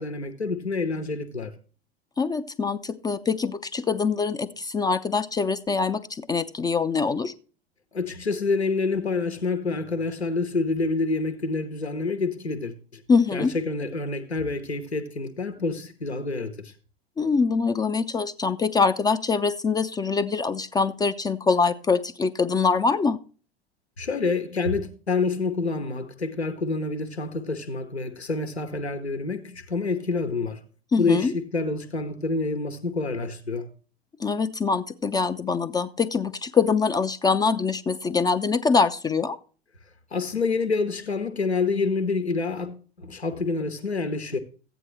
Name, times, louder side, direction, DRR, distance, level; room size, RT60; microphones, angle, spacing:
voice 1, 0.0-1.5 7.9-13.0 13.3-16.7 24.0-30.6 31.0-33.7 40.1-44.4, left 3 dB, 90° left, 1.0 m, -27 dB
voice 2, 2.2-7.3 13.1-13.5 17.2-23.2 30.9-31.3 34.2-39.4, left 4 dB, 15° left, 0.4 m, -24 dB
14.5 x 9.0 x 3.2 m
figure-of-eight pair, 85°, 32 cm